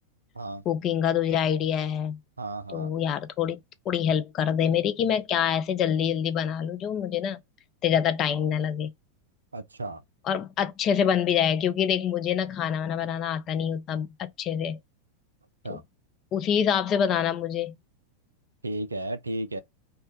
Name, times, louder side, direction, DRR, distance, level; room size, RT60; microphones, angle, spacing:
voice 1, 0.7-2.2 2.7-3.6 3.9-7.4 7.8-8.9 10.3-14.8 15.7-15.8 16.3-17.8, left 8 dB, 35° left, 0.4 m, -26 dB
voice 2, 2.4-2.9 9.5-10.0 15.6-15.8 18.6-19.6, right 2 dB, 80° right, 0.3 m, -33 dB
2.2 x 2.1 x 2.9 m
figure-of-eight pair, 90°, 0 cm